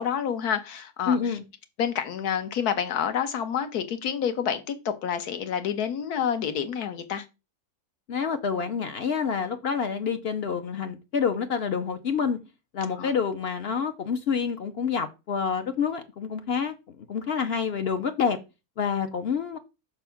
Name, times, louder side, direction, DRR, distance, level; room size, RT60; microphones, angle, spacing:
voice 1, 0.0-1.3 1.8-7.2 13.0-13.1, left 8 dB, 85° left, 1.4 m, -28 dB
voice 2, 1.1-1.4 8.1-12.4 12.7-18.4 18.8-19.6, left 6 dB, 60° left, 0.7 m, -28 dB
6.1 x 3.4 x 5.7 m
omnidirectional pair, 1.6 m